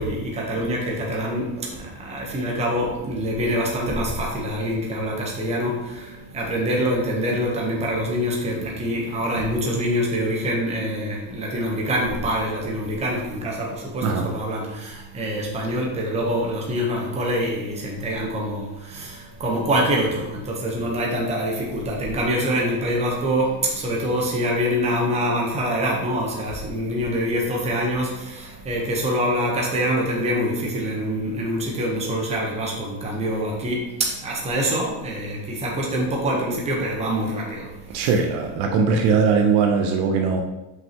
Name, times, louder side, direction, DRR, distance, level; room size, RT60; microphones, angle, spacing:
voice 1, 0.0-38.1, equal, 15° right, -2 dB, 1.0 m, -25 dB
voice 2, 37.9-40.4, right 5 dB, 60° right, 3 dB, 0.8 m, -20 dB
5.8 x 5.4 x 3.0 m, 0.96 s
cardioid pair, 175°, 41 cm